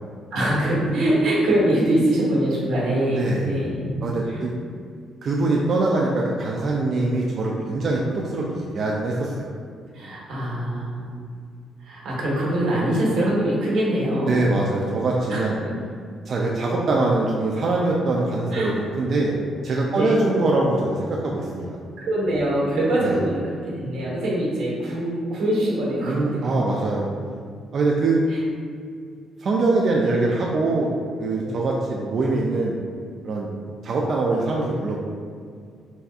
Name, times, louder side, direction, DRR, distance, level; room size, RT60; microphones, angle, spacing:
voice 1, 0.3-4.4 9.9-11.3 11.8-14.5 15.3-15.7 18.5-18.7 19.9-20.3 22.0-26.6 28.3-28.4, right 1 dB, 85° right, -6 dB, 1.3 m, -23 dB
voice 2, 3.1-3.5 4.0-4.5 5.2-9.5 14.3-15.6 16.3-19.3 19.6-21.8 23.0-23.2 26.0-27.1 27.7-28.2 29.4-30.9 31.2-32.8 33.2-33.5 33.8-35.0, right 2 dB, 45° right, -2 dB, 0.3 m, -23 dB
4.1 x 3.3 x 2.4 m, 2.2 s
cardioid pair, 150°, 0 cm